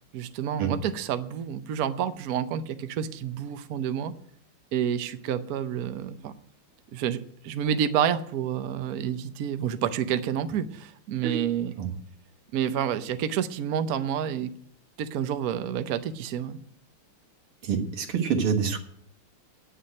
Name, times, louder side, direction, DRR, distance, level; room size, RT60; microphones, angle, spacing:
voice 1, 0.1-4.1 4.7-6.3 6.9-11.7 12.5-14.5 15.0-16.6, right 9 dB, 65° right, 10 dB, 0.9 m, -29 dB
voice 2, 17.6-18.8, right 7 dB, 80° right, 3 dB, 2.5 m, -26 dB
10.0 x 7.6 x 9.0 m, 0.63 s
omnidirectional pair, 2.4 m